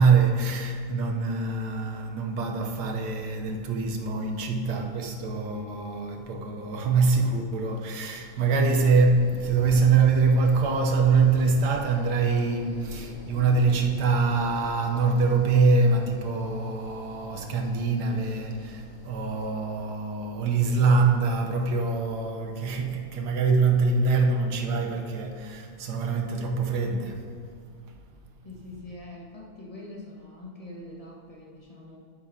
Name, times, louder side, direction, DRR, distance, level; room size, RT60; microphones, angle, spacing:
voice 1, 0.0-27.3, right 4 dB, 85° right, 1.4 m, -24 dB
sound 1, 7.9-19.7, left 1 dB, 65° left, 2.0 m, -46 dB
voice 2, 28.4-32.0, left 2 dB, 25° left, 1.5 m, -43 dB
10.5 x 9.7 x 2.7 m
omnidirectional pair, 1.7 m